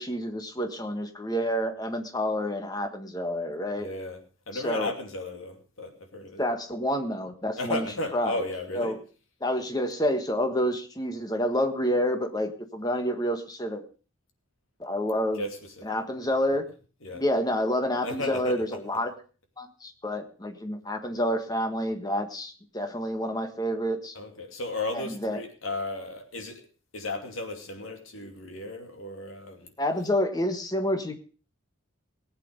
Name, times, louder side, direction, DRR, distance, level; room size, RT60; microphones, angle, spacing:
voice 1, 0.0-3.9 4.5-4.9 6.4-7.9 8.1-8.4 8.7-9.0 9.4-13.8 14.8-15.4 15.8-16.7 17.1-19.1 19.6-24.1 24.9-25.4 29.8-31.1, equal, 20° left, 6 dB, 1.4 m, -28 dB
voice 2, 3.8-4.2 4.5-6.4 7.6-9.0 15.3-15.7 17.0-17.2 18.0-18.8 24.1-26.6 26.9-29.7, left 2 dB, 80° left, 5 dB, 2.6 m, -34 dB
19.0 x 8.5 x 5.2 m, 0.38 s
head